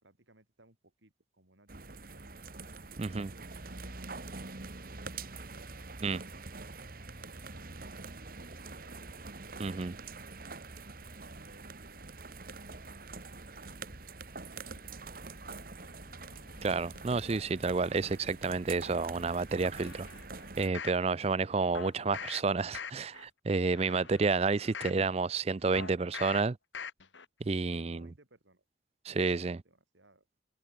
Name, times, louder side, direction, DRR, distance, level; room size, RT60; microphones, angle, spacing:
voice 1, 0.0-2.3 3.1-5.0 5.6-6.3 7.4-9.0 11.0-12.2 13.0-13.8 14.3-16.0 27.7-28.6 29.6-30.3, right 2 dB, 80° right, 5.1 m, -62 dB
sound 1, 1.7-20.7, right 3 dB, 50° right, 1.8 m, -45 dB
voice 2, 3.0-3.3 6.0-6.2 9.6-9.9 16.6-20.1 20.6-26.6 27.4-28.1 29.1-29.6, right 4 dB, 35° right, 0.4 m, -30 dB
sound 2, 12.2-23.3, left 1 dB, 65° left, 5.2 m, -61 dB
sound 3, 19.8-21.0 21.7-22.4 22.7-23.2 23.7-25.0 25.7-26.4 26.7-27.2 27.6-27.7, left 6 dB, 80° left, 2.5 m, -43 dB
head